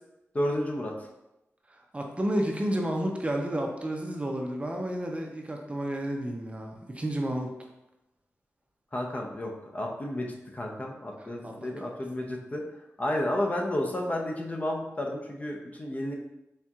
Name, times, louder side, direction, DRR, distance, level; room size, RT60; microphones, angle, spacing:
voice 1, 0.3-0.9 8.9-12.6 13.0-16.1, left 1 dB, 30° left, 1 dB, 0.6 m, -31 dB
voice 2, 1.7-7.5 11.2-11.9, right 1 dB, 25° right, 2 dB, 0.5 m, -31 dB
4.3 x 3.6 x 2.3 m, 0.92 s
wide cardioid pair, 85°, 5 cm